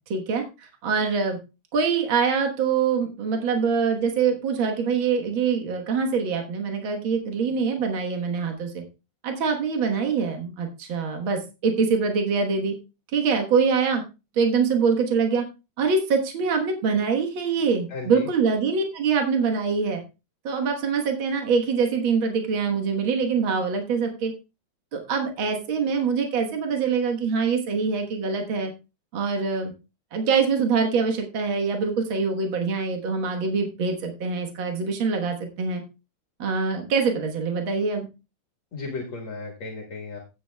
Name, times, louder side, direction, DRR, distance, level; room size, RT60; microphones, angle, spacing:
voice 1, 0.1-1.4 1.7-8.8 9.2-12.7 13.1-14.0 14.3-15.4 15.8-20.0 20.4-24.3 24.9-28.7 29.1-29.7 30.1-35.8 36.4-38.1, right 5 dB, 70° right, 3 dB, 2.1 m, -24 dB
voice 2, 17.9-18.3 38.7-40.2, left 3 dB, 65° left, 1 dB, 2.4 m, -35 dB
16.0 x 7.9 x 2.3 m, 0.28 s
omnidirectional pair, 2.3 m